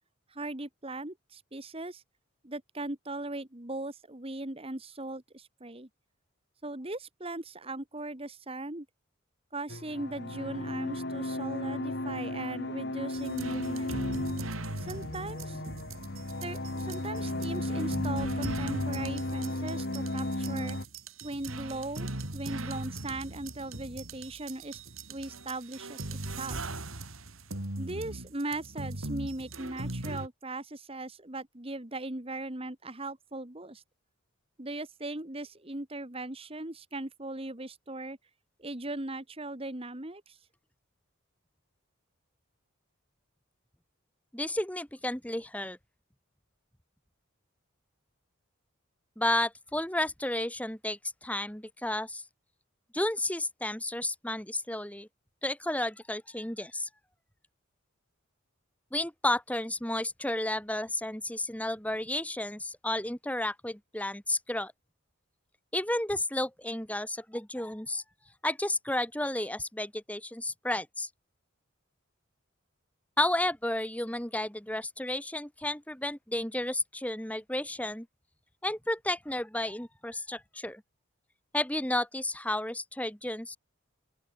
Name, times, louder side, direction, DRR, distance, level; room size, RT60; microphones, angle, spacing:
voice 1, 0.3-2.0 2.4-5.9 6.6-8.9 9.5-14.0 14.8-15.6 16.4-20.8 21.2-24.8 25.1-26.6 27.7-33.8 34.6-38.2 38.6-40.4, right 2 dB, 25° right, 1.7 m, -39 dB
sound 1, 9.7-20.8, left 1 dB, 55° left, 2.2 m, -34 dB
sound 2, 13.1-30.3, right 2 dB, 75° right, 3.6 m, -39 dB
voice 2, 44.3-45.8 49.2-52.2 52.9-55.1 55.4-56.9 58.9-64.7 65.7-68.0 68.4-71.1 73.2-78.1 78.6-80.8 81.5-83.6, left 1 dB, 5° left, 2.0 m, -32 dB
open air
head